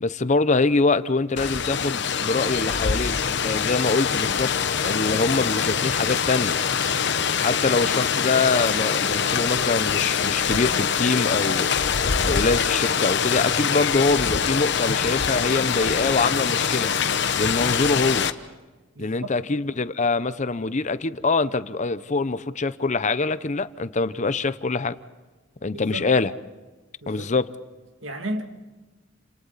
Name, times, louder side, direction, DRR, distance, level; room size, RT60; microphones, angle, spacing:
voice 1, 0.0-4.5 4.8-6.5 7.4-11.7 12.2-16.9 17.4-18.3 19.0-24.9 25.6-26.3 27.1-27.5, left 3 dB, 40° left, 0.7 m, -24 dB
Rain, 1.4-18.3, left 7 dB, 65° left, 1.0 m, -24 dB
voice 2, 19.0-19.3 25.7-26.1 27.0-27.3 28.0-28.4, right 1 dB, 85° right, 2.4 m, -33 dB
29.5 x 27.0 x 4.1 m
head